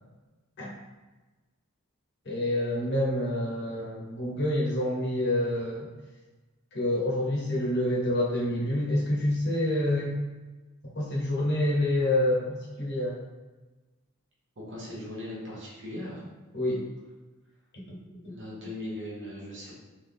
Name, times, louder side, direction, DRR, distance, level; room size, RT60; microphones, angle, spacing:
voice 1, 2.2-5.9 6.7-10.1 10.9-13.2 16.5-16.8 17.7-18.3, left 1 dB, 50° left, -3 dB, 1.0 m, -27 dB
voice 2, 14.6-16.2 18.3-19.8, left 1 dB, 55° right, -5 dB, 1.2 m, -39 dB
3.9 x 2.7 x 3.5 m, 1.2 s
head